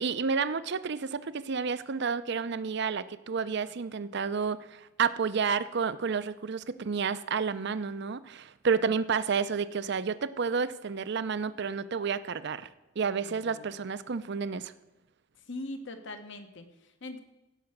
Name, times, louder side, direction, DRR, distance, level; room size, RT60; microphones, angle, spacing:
voice 1, 0.0-12.7 13.0-14.7, right 5 dB, 60° right, 15 dB, 0.6 m, -30 dB
voice 2, 13.2-13.7 15.5-17.2, left 2 dB, 65° left, 7 dB, 1.3 m, -42 dB
16.5 x 5.8 x 6.5 m, 1.1 s
head